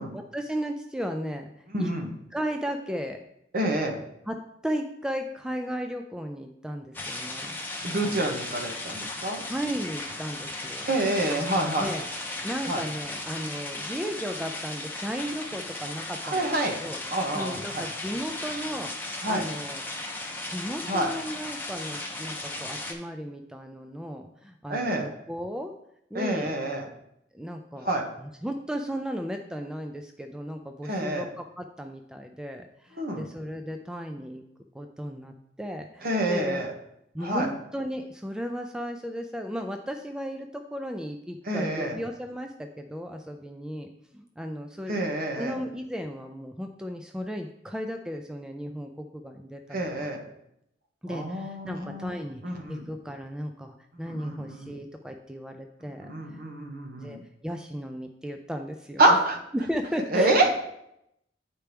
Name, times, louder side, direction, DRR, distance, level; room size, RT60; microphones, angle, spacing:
voice 1, 0.1-1.5 1.8-1.9 2.3-3.2 4.3-4.4 4.6-7.6 8.0-8.3 9.4-10.9 11.8-12.1 12.4-16.5 16.8-17.0 17.3-18.9 19.3-19.8 20.4-25.7 26.1-26.5 27.3-27.9 28.2-34.4 34.7-36.6 37.1-43.9 44.1-45.0 45.4-50.1 51.0-56.4 57.0-59.0 59.5-60.6, equal, 5° right, 4 dB, 0.3 m, -35 dB
voice 2, 1.7-2.1 3.5-4.0 7.8-9.4 10.8-11.9 12.7-12.8 16.2-16.8 17.1-17.8 19.2-19.4 20.9-21.1 24.7-25.1 26.1-26.9 27.8-28.1 30.8-31.2 33.0-33.3 36.0-36.7 37.2-37.5 41.4-42.0 44.9-45.6 49.7-50.3 51.1-52.9 53.9-54.7 55.8-57.2 59.0-59.4 60.1-60.5, right 1 dB, 55° right, 2 dB, 1.1 m, -27 dB
sound 1, 6.9-22.9, left 2 dB, 10° left, 0.9 m, -36 dB
9.4 x 4.5 x 3.4 m, 0.78 s
head